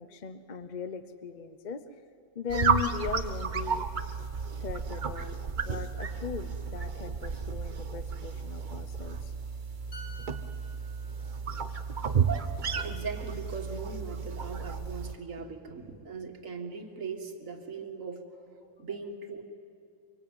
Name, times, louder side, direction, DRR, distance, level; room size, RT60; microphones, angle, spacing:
voice 1, 0.0-1.8 2.3-3.9 4.6-9.3, left 7 dB, 40° left, 11 dB, 0.8 m, -38 dB
sound 1, 2.5-15.2, right 6 dB, 40° right, 1.0 m, -32 dB
sound 2, 9.9-13.5 13.8-14.1, right 2 dB, 85° left, 3.9 m, -53 dB
voice 2, 12.8-19.4, right 4 dB, 90° right, 5 dB, 2.1 m, -40 dB
24.5 x 23.5 x 9.0 m, 2.5 s
omnidirectional pair, 1.3 m